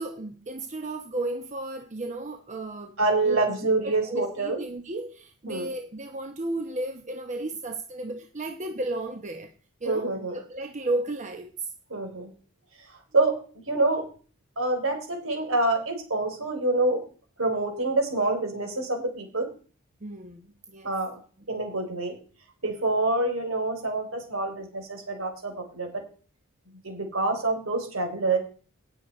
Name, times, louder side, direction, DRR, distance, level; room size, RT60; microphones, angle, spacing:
voice 1, 0.0-2.9 3.2-3.4 3.8-9.5 9.8-10.1 10.3-11.7 20.0-20.9, right 2 dB, 35° right, 5 dB, 1.0 m, -33 dB
voice 2, 3.0-4.6 5.5-5.7 9.9-10.4 11.9-12.3 13.1-13.3 13.7-14.0 14.6-17.0 17.4-19.5 20.8-21.2 21.5-22.1 22.6-26.0 26.8-28.4, right 2 dB, 65° right, 4 dB, 3.8 m, -26 dB
18.0 x 6.7 x 4.3 m, 0.39 s
head